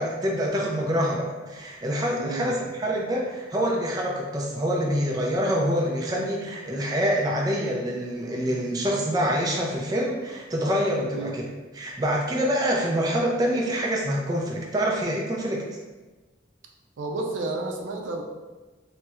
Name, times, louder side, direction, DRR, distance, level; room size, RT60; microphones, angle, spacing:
voice 1, 0.0-11.5 11.7-15.7, equal, 20° right, -2 dB, 0.3 m, -26 dB
voice 2, 2.2-2.5 11.1-11.4 17.0-18.2, right 2 dB, 85° right, 1 dB, 0.4 m, -31 dB
4.1 x 2.0 x 2.3 m, 1.2 s
head